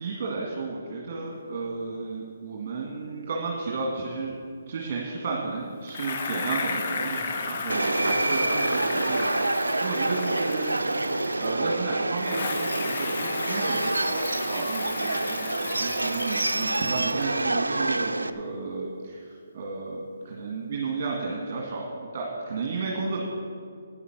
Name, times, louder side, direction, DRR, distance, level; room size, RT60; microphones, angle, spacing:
voice 1, 0.0-4.3 4.7-10.8 11.4-23.2, right 4 dB, 45° right, -2 dB, 1.9 m, -33 dB
Bicycle, 5.9-11.7 12.2-17.4, left 4 dB, 45° left, 1.1 m, -34 dB
Subway metro underground, 7.7-18.3, right 2 dB, 85° right, 0.5 m, -27 dB
sound 1, 10.1-17.9, right 3 dB, 15° right, 2.0 m, -48 dB
11.0 x 9.6 x 6.1 m, 2.3 s
figure-of-eight pair, 140°, 0 cm